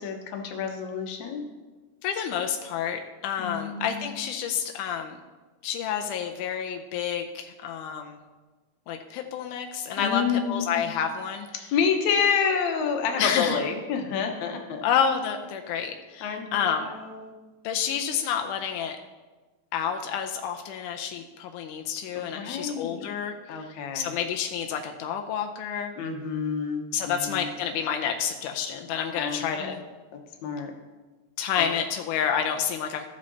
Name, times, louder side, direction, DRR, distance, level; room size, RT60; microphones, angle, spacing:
voice 1, 0.0-1.4 3.4-4.1 10.0-10.8 11.7-14.8 16.2-17.4 22.2-23.1 23.5-24.1 26.0-27.5 29.2-29.7 30.4-30.7 31.6-31.7, left 6 dB, 70° left, 3 dB, 2.3 m, -29 dB
voice 2, 2.0-5.2 5.6-8.2 8.9-10.2 10.5-11.5 13.2-13.6 14.8-16.9 17.6-19.0 19.7-23.4 23.9-26.0 26.9-29.8 31.4-33.1, left 8 dB, 90° left, 4 dB, 2.2 m, -29 dB
14.5 x 6.5 x 4.0 m, 1.3 s
omnidirectional pair, 3.6 m